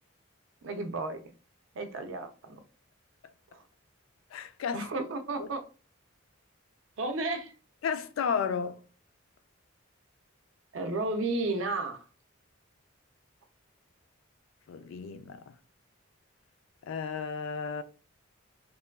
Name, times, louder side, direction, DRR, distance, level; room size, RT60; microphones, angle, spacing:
voice 1, 0.6-1.3 1.8-2.6 3.5-3.6 4.7-5.6 7.0-7.5 10.7-12.0, right 2 dB, 70° right, 0.5 m, -33 dB
voice 2, 4.3-4.8 5.4-5.5 7.8-8.8 14.7-15.4 16.9-17.8, left 6 dB, 75° left, 0.3 m, -33 dB
2.9 x 2.2 x 2.2 m
head